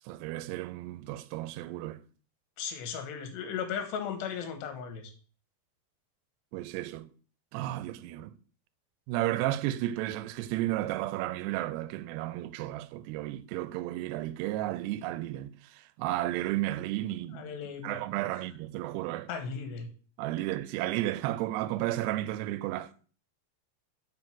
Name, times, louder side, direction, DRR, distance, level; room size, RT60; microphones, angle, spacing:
voice 1, 0.1-2.0 6.5-7.1 7.5-8.4 9.1-17.5 17.8-19.3 20.2-22.9, right 15 dB, 85° right, 2.6 m, -33 dB
voice 2, 2.6-5.1 17.3-18.0 19.3-19.9, left 7 dB, 85° left, 3.5 m, -36 dB
7.7 x 5.1 x 6.1 m
omnidirectional pair, 4.8 m